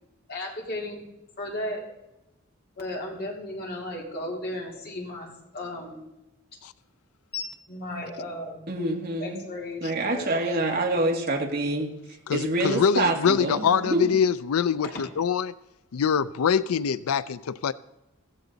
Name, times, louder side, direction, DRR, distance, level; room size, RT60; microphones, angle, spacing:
voice 1, 0.3-1.0 1.4-1.8 2.8-6.0 7.3-8.7 9.2-10.3 14.8-15.0, left 1 dB, 45° left, 3.5 m, -35 dB
voice 2, 8.7-9.4 9.8-11.9 12.3-14.2, right 2 dB, 45° right, 2.2 m, -26 dB
voice 3, 12.3-15.5 15.9-17.7, left 7 dB, 90° left, 0.4 m, -24 dB
15.0 x 15.0 x 4.0 m
head